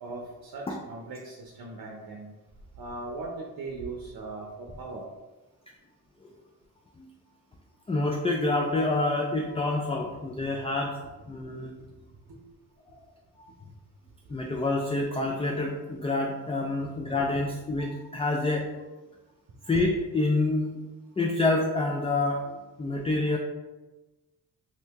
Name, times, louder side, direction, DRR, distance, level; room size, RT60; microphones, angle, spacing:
voice 1, 0.0-2.3 2.8-5.1 12.3-12.4, right 3 dB, 60° right, 0 dB, 0.7 m, -39 dB
voice 2, 7.9-10.9 11.3-11.7 13.4-13.5 14.3-18.7 19.7-20.8 21.2-23.4, left 2 dB, 15° left, 0 dB, 0.3 m, -27 dB
2.7 x 2.7 x 3.5 m, 1.1 s
cardioid pair, 60°, 39 cm